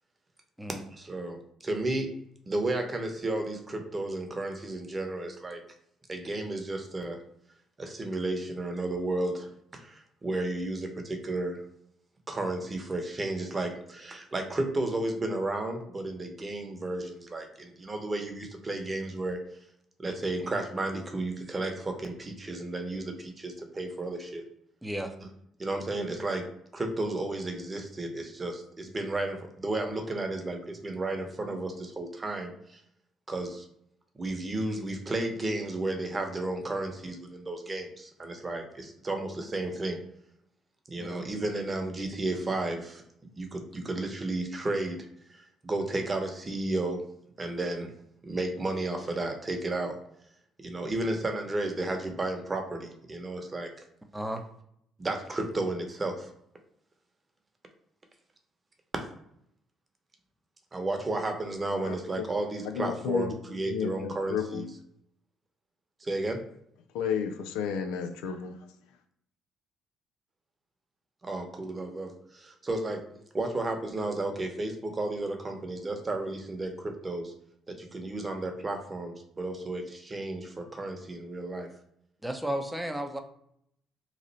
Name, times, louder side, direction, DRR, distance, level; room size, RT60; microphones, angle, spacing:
voice 1, 0.7-2.1 2.5-5.6 6.1-7.2 7.8-11.6 12.3-19.4 20.0-24.4 25.6-26.5 26.7-32.8 33.3-33.7 34.1-40.0 40.9-43.0 43.4-47.0 47.4-47.9 48.2-50.0 50.6-53.7 55.0-56.3 60.7-64.7 66.0-66.4 71.2-73.0 73.3-77.3 77.7-81.7, right 2 dB, 30° right, 0.9 m, -33 dB
voice 2, 24.8-25.1 41.0-41.2 54.1-54.4 82.2-83.2, right 1 dB, 5° right, 0.7 m, -33 dB
voice 3, 61.8-62.2 62.7-63.4 63.7-64.6 66.9-68.6, left 7 dB, 85° left, 0.5 m, -32 dB
3.1 x 2.5 x 4.0 m
supercardioid pair, 65°, 0 cm